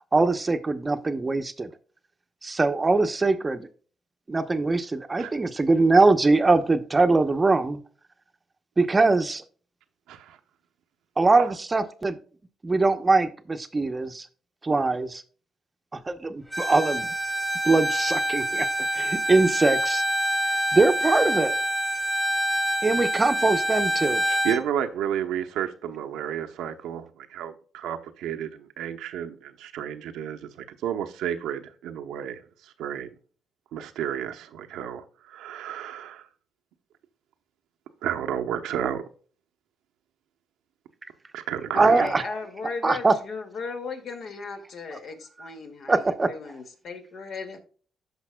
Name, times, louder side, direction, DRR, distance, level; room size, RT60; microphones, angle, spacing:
voice 1, 0.1-1.7 2.4-3.7 4.3-7.8 8.8-9.4 11.2-12.2 12.6-14.3 14.6-15.2 16.1-17.1 17.6-18.7 18.9-20.0 20.7-21.6 22.8-24.2 41.8-42.2 42.8-43.1 45.9-46.3, right 3 dB, 25° right, 0.8 m, -22 dB
Bowed string instrument, 16.5-24.6, equal, 5° left, 1.5 m, -26 dB
voice 2, 24.4-33.1 33.7-36.3 38.0-39.0 41.3-42.1, right 9 dB, 90° right, 0.9 m, -31 dB
voice 3, 41.7-47.6, left 4 dB, 60° left, 2.1 m, -36 dB
15.0 x 5.3 x 2.3 m
cardioid pair, 90°, 0 cm